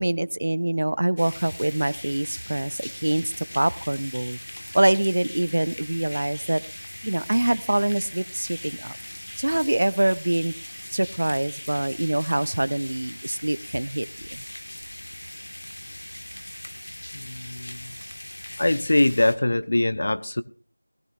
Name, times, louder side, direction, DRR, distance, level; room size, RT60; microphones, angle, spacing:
voice 1, 0.0-4.4 4.7-6.6 7.0-9.0 9.4-10.5 10.9-14.4, right 1 dB, 45° right, 19 dB, 0.5 m, -25 dB
sound 1, 1.2-19.4, left 1 dB, 55° left, 1.7 m, -40 dB
voice 2, 17.1-17.9 18.6-20.4, left 1 dB, 35° left, 14 dB, 0.7 m, -23 dB
18.5 x 13.5 x 2.6 m, 0.42 s
figure-of-eight pair, 175°, 0 cm